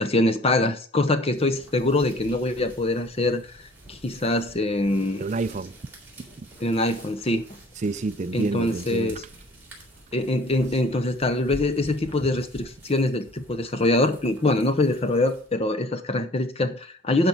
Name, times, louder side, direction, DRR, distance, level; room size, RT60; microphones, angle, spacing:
voice 1, 0.0-3.4 3.9-5.2 6.6-7.4 8.3-9.2 10.1-17.3, left 2 dB, 30° left, 0.7 m, -24 dB
sound 1, 1.2-15.7, right 1 dB, 10° right, 3.5 m, -47 dB
voice 2, 5.2-5.7 6.4-6.5 7.8-9.2, right 3 dB, 35° right, 0.4 m, -29 dB
10.5 x 5.1 x 5.5 m
head